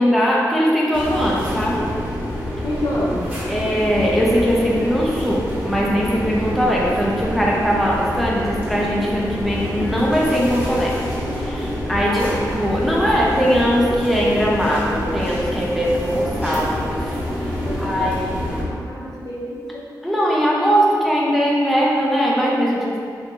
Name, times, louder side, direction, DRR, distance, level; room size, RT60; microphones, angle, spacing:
voice 1, 0.0-1.8 3.5-10.9 11.4-12.2 12.5-17.0 17.8-18.4 18.7-18.8 20.0-23.0, equal, ahead, -5 dB, 0.5 m, -20 dB
sound 1, 0.9-18.6, equal, 25° right, 1.2 m, -27 dB
voice 2, 2.6-3.3 12.1-12.3 17.7-18.1 18.5-19.8, left 1 dB, 60° left, -6 dB, 0.8 m, -28 dB
3.5 x 3.1 x 2.6 m, 2.3 s
cardioid pair, 75°, 7 cm